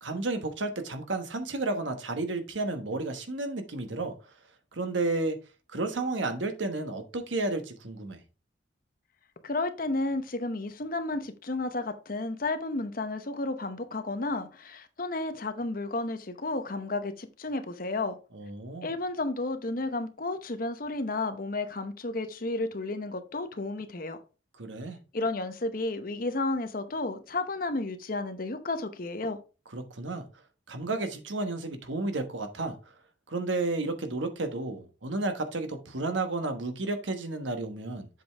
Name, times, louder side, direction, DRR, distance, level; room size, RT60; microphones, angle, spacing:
voice 1, 0.0-4.1 4.7-5.4 5.7-8.2 18.3-18.9 24.6-25.0 29.7-30.2 30.7-32.8 33.3-38.1, right 2 dB, 75° right, 1.1 m, -32 dB
voice 2, 9.4-18.2 18.8-24.2 25.1-29.4, left 2 dB, 45° left, 0.8 m, -32 dB
7.7 x 5.3 x 3.4 m
head